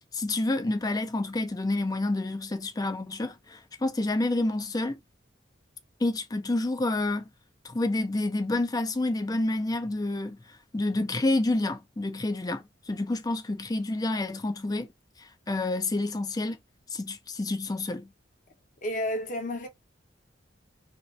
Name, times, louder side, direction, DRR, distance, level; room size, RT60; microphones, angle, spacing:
voice 1, 0.1-5.0 6.0-7.2 7.6-10.4 10.7-14.9 15.5-16.6 16.9-18.1, left 2 dB, 20° left, 0.4 m, -28 dB
voice 2, 18.8-19.7, left 1 dB, 45° left, 0.8 m, -31 dB
2.7 x 2.4 x 3.1 m
head